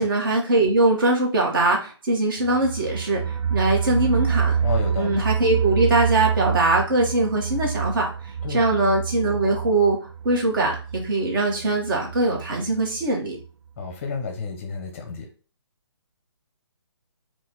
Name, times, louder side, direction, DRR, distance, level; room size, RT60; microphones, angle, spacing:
voice 1, 0.0-4.6 5.0-8.1 8.5-10.0 10.2-13.4, right 2 dB, 50° right, 0 dB, 1.4 m, -22 dB
sound 1, 2.4-13.1 13.4-13.5 13.8-13.9, right 7 dB, 80° right, 0.4 m, -27 dB
voice 2, 4.6-5.2 8.4-8.7 13.8-15.2, left 4 dB, 25° left, 3 dB, 0.7 m, -31 dB
3.8 x 2.5 x 3.8 m, 0.38 s
hypercardioid pair, 155°, 15 cm